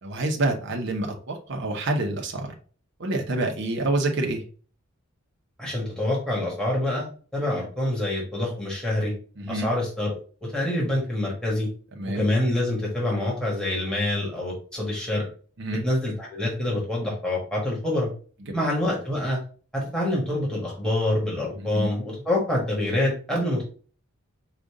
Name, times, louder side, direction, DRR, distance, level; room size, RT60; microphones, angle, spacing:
voice 1, 0.0-2.5 3.0-4.4 9.4-9.7 12.0-12.2 15.6-15.9 21.6-21.9, right 2 dB, 55° right, 2 dB, 0.9 m, -27 dB
voice 2, 5.6-9.1 9.5-10.1 10.4-11.7 12.1-15.2 15.8-18.1 18.5-19.4 19.7-23.7, left 1 dB, 5° left, -4 dB, 1.4 m, -26 dB
5.2 x 2.5 x 3.6 m, 0.41 s
head